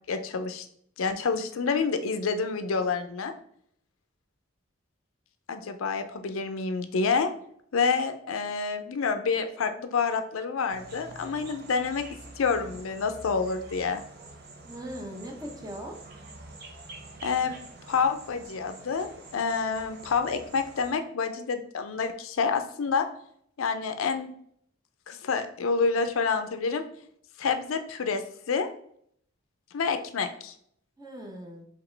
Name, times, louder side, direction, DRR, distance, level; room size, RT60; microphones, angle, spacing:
voice 1, 0.1-0.6 1.0-3.3 5.5-7.3 7.7-12.0 12.4-14.0 17.2-17.5 17.9-23.1 23.6-24.3 25.1-26.8 27.4-28.2 28.5-28.7 29.7-30.5, left 5 dB, 85° left, 8 dB, 0.5 m, -28 dB
sound 1, 10.7-20.9, right 2 dB, 50° right, 0.7 m, -47 dB
voice 2, 14.6-16.0 31.0-31.7, equal, 20° right, 2 dB, 0.7 m, -39 dB
4.9 x 2.9 x 3.3 m, 0.65 s
head